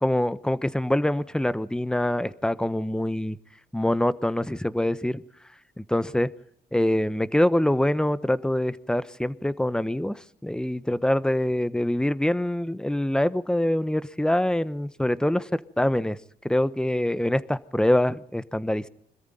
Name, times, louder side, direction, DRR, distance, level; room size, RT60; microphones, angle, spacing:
voice 1, 0.0-3.4 3.7-5.2 5.8-6.3 6.7-15.5 15.8-16.2 16.4-18.9, left 1 dB, 5° left, 15 dB, 1.1 m, -24 dB
25.5 x 14.0 x 9.2 m, 0.68 s
cardioid pair, 75°, 16 cm